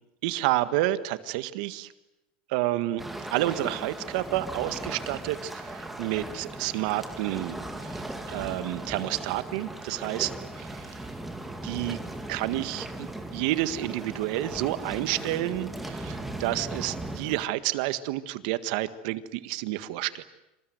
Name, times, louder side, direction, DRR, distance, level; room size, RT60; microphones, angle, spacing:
voice 1, 0.2-1.9 2.5-3.0 3.3-7.6 7.9-8.0 8.3-10.3 11.6-12.0 12.3-20.2, right 15 dB, 65° right, 13 dB, 1.7 m, -29 dB
sound 1, 3.0-17.4, right 1 dB, 5° right, 2.9 m, -38 dB
27.5 x 27.0 x 8.1 m, 0.94 s
supercardioid pair, 150°, 5 cm